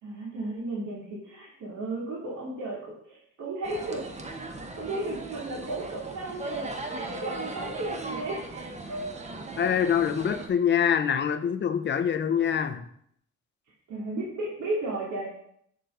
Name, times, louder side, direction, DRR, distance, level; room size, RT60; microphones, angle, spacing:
voice 1, 0.0-2.8 3.1-4.0 4.8-9.2 10.3-10.4 13.9-15.3, right 2 dB, 70° right, -5 dB, 2.8 m, -34 dB
sound 1, 3.6-10.5, right 2 dB, 25° right, 1.0 m, -38 dB
voice 2, 9.6-12.9, left 8 dB, 35° left, 10 dB, 0.6 m, -25 dB
6.7 x 6.6 x 3.8 m, 0.68 s
cardioid pair, 90°, 30 cm